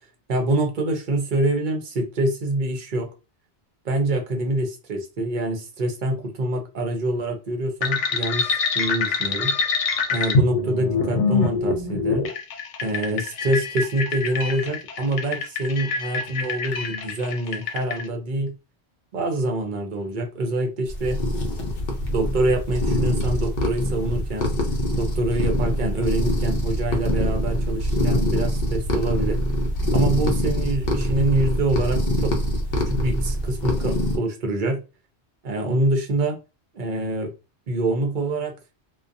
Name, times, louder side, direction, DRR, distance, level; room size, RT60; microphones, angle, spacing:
voice 1, 0.3-3.1 3.8-9.5 10.1-12.3 12.8-18.5 19.1-21.2 22.1-24.5 25.0-29.4 29.9-32.3 32.9-34.8 35.4-36.4 36.7-37.3 37.7-38.5, right 1 dB, 50° right, 4 dB, 0.7 m, -25 dB
sound 1, 7.8-18.0, left 4 dB, 85° left, 0.9 m, -25 dB
sound 2, 20.9-34.2, equal, 50° left, 0.7 m, -24 dB
2.4 x 2.2 x 2.6 m, 0.30 s
omnidirectional pair, 1.2 m